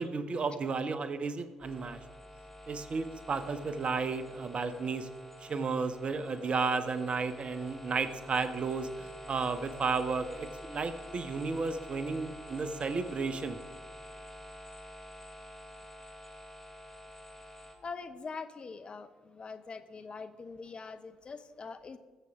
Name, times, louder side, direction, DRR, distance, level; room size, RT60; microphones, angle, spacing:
voice 1, 0.0-2.0 2.7-5.1 5.4-13.6, right 4 dB, 40° right, 11 dB, 1.0 m, -33 dB
sound 1, 1.6-17.7, left 1 dB, 15° left, 2.6 m, -48 dB
voice 2, 17.8-22.0, left 4 dB, 35° left, 10 dB, 0.8 m, -43 dB
19.0 x 7.6 x 3.6 m, 1.4 s
figure-of-eight pair, 50°, 3 cm